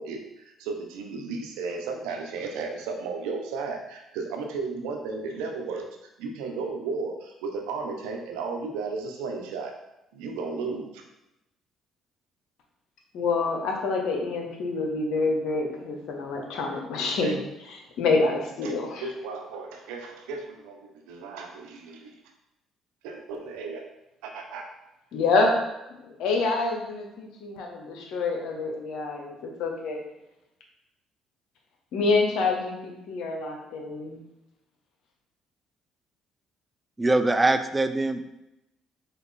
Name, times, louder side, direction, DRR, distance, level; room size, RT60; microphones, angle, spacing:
voice 1, 0.0-5.8 6.2-9.7 10.1-11.0 17.2-17.4 18.6-18.7 19.0-22.1 23.0-23.8 24.2-24.7, right 4 dB, 85° right, 3 dB, 0.5 m, -34 dB
voice 2, 13.1-17.4 18.0-19.0 25.1-25.5 26.2-30.0 31.9-34.2, left 3 dB, 75° left, 1 dB, 0.8 m, -27 dB
voice 3, 37.0-38.2, right 2 dB, 20° right, 9 dB, 0.3 m, -22 dB
4.0 x 2.4 x 3.7 m, 0.91 s
supercardioid pair, 65°, 0 cm